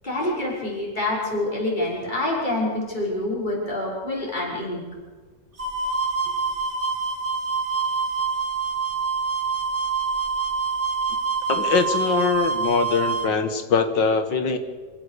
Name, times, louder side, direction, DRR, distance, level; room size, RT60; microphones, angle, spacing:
voice 1, 0.0-4.8, left 1 dB, 25° left, -4 dB, 6.4 m, -26 dB
sound 1, 5.6-13.3, right 5 dB, 30° right, 2.8 m, -26 dB
voice 2, 11.5-14.6, left 5 dB, 80° left, 9 dB, 2.3 m, -22 dB
26.0 x 16.0 x 6.8 m, 1.5 s
omnidirectional pair, 2.0 m